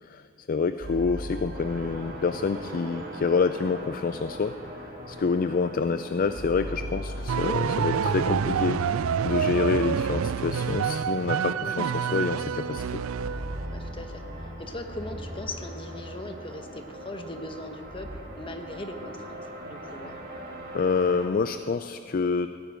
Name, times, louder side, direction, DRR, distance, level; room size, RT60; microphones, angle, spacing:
voice 1, 0.0-4.5 4.8-8.8 9.2-13.0 20.7-22.5, left 4 dB, 45° left, 11 dB, 0.4 m, -27 dB
sound 1, 0.8-5.8 6.1-11.4 12.2-18.2, equal, 60° right, 4.0 m, -40 dB
sound 2, 1.5-21.3, right 1 dB, 45° right, 2.5 m, -44 dB
sound 3, 7.3-13.8, right 7 dB, 80° right, 0.4 m, -27 dB
voice 2, 13.7-20.2, left 2 dB, 25° left, 5 dB, 1.1 m, -39 dB
17.5 x 9.3 x 8.9 m, 2.6 s
head